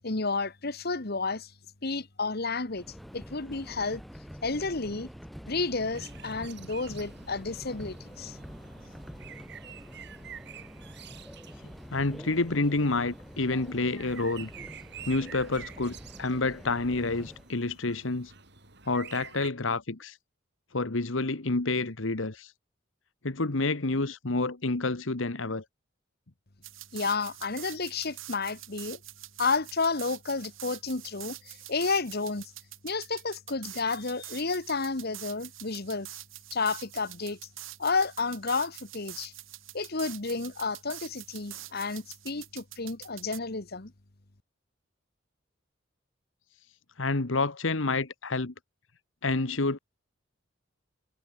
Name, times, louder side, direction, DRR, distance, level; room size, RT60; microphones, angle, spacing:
voice 1, 0.0-1.5 1.8-2.8 3.1-4.0 4.4-5.1 5.5-8.4 26.9-29.0 29.4-32.5 32.8-36.1 36.5-37.4 37.8-39.3 39.7-43.9, left 4 dB, 55° left, 1.6 m, -31 dB
Subway metro underground, 2.7-17.5, equal, ahead, 4.1 m, -46 dB
sound 1, 5.9-19.5, right 8 dB, 60° right, 7.5 m, -49 dB
voice 2, 11.9-14.5 15.1-18.3 18.9-20.2 20.7-22.5 23.2-25.6 47.0-48.5 49.2-49.8, left 3 dB, 75° left, 1.5 m, -29 dB
sound 2, 26.6-43.4, right 15 dB, 85° right, 3.6 m, -45 dB
head